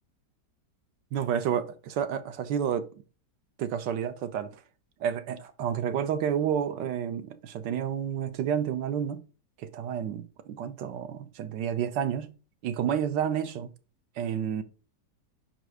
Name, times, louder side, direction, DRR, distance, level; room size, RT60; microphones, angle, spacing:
voice 1, 1.1-2.9 3.6-4.6 5.0-9.2 9.6-12.4 12.6-13.7 14.2-14.6, right 8 dB, 85° right, 1.4 m, -30 dB
5.1 x 4.6 x 4.7 m
omnidirectional pair, 1.9 m